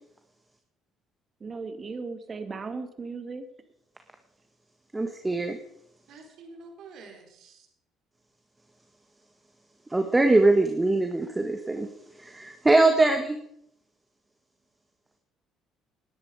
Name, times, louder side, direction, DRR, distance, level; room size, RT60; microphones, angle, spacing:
voice 1, 1.4-3.5, right 4 dB, 40° right, 8 dB, 2.2 m, -36 dB
voice 2, 4.9-5.6 9.9-11.9 12.2-13.4, right 2 dB, 15° right, 6 dB, 1.7 m, -22 dB
voice 3, 6.1-7.7, right 3 dB, 65° right, 3 dB, 3.9 m, -48 dB
19.5 x 10.5 x 5.0 m, 0.74 s
hypercardioid pair, 65°, 0 cm